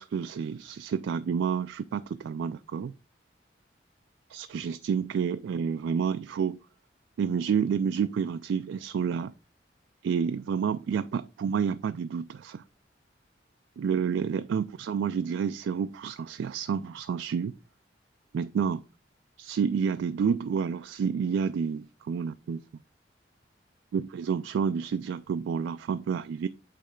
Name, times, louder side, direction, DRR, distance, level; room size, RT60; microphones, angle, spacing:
voice 1, 0.0-2.9 4.3-6.6 7.2-9.3 10.0-12.6 13.8-17.5 18.3-18.8 19.4-22.6 23.9-26.5, right 6 dB, 85° right, 0.3 m, -29 dB
8.4 x 3.2 x 3.7 m
head